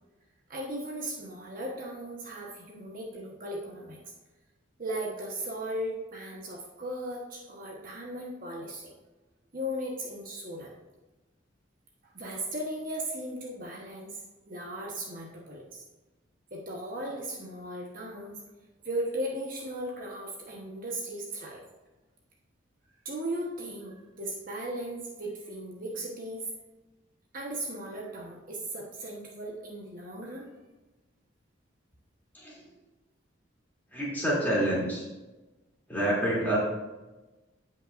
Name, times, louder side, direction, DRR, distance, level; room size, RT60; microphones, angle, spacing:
voice 1, 0.5-4.0 4.8-8.9 9.5-10.7 12.0-14.2 14.5-15.8 16.5-18.4 18.8-21.6 23.0-26.5 27.3-30.5, right 1 dB, 45° right, -2 dB, 1.2 m, -37 dB
voice 2, 33.9-35.0 35.9-36.6, right 1 dB, 10° left, -7 dB, 2.9 m, -27 dB
16.0 x 5.4 x 2.6 m, 1.1 s
head